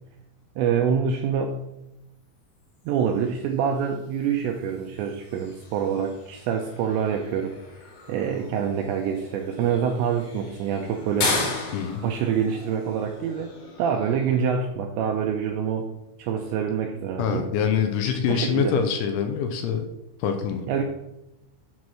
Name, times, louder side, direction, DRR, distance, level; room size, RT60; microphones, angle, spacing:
voice 1, 0.6-1.6 2.9-7.6 8.1-11.4 12.0-15.9 16.2-17.5 18.3-18.7 20.7-20.8, right 7 dB, 80° right, 3 dB, 2.5 m, -26 dB
sound 1, 2.8-14.7, left 3 dB, 65° left, 4.5 m, -36 dB
voice 2, 11.7-12.0 17.2-19.9 20.2-20.7, left 7 dB, 80° left, 6 dB, 3.0 m, -25 dB
9.6 x 4.1 x 6.2 m, 0.88 s
omnidirectional pair, 5.8 m